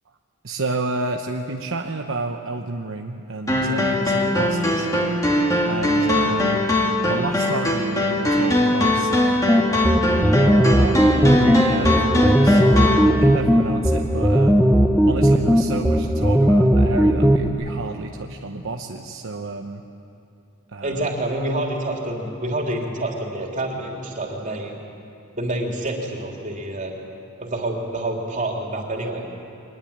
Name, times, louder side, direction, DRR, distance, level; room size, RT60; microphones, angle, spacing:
voice 1, 0.4-4.9 5.7-6.7 7.1-9.4 10.4-14.6 15.1-19.8 20.7-21.1, right 3 dB, 65° right, 3 dB, 1.0 m, -30 dB
sound 1, 3.5-13.1, left 1 dB, 15° left, 2.6 m, -21 dB
sound 2, 9.5-17.5, equal, ahead, 1.0 m, -17 dB
voice 2, 20.8-24.8 25.4-26.9 27.4-29.2, right 1 dB, 35° right, 0 dB, 3.3 m, -27 dB
23.5 x 20.5 x 8.8 m, 2.8 s
head